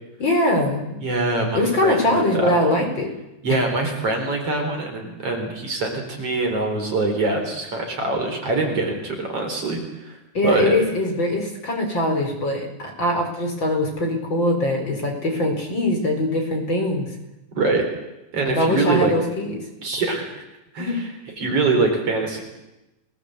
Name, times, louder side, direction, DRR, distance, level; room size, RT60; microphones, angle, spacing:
voice 1, 0.2-1.0 1.5-3.1 3.5-3.6 10.3-17.1 18.4-19.6 20.8-20.9, left 1 dB, 35° left, 3 dB, 5.1 m, -22 dB
voice 2, 1.0-2.7 3.4-10.2 10.4-10.7 17.5-17.8 18.3-19.1 19.8-20.3 20.7-21.1 21.4-22.4, right 3 dB, 45° right, 3 dB, 5.1 m, -23 dB
29.5 x 19.5 x 8.1 m, 0.96 s
omnidirectional pair, 3.6 m